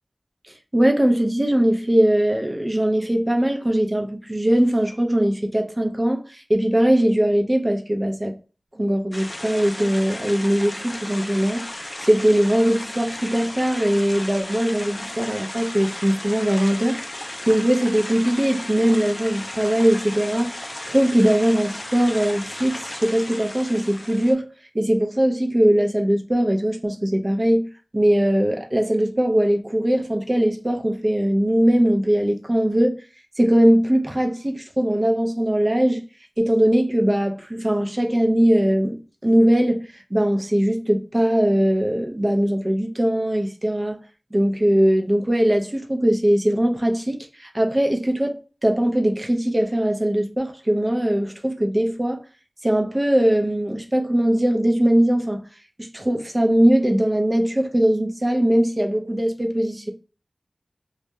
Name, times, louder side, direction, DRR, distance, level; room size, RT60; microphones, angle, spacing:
voice 1, 0.7-8.4 8.8-11.7 12.0-20.6 20.9-24.5 24.7-27.7 27.9-33.0 33.4-36.0 36.4-44.0 44.3-52.2 52.6-55.4 55.8-59.9, right 1 dB, 30° right, 0.5 m, -20 dB
sound 1, 9.1-24.3, left 1 dB, 35° left, 0.4 m, -35 dB
2.3 x 2.1 x 2.7 m
wide cardioid pair, 60°, 0 cm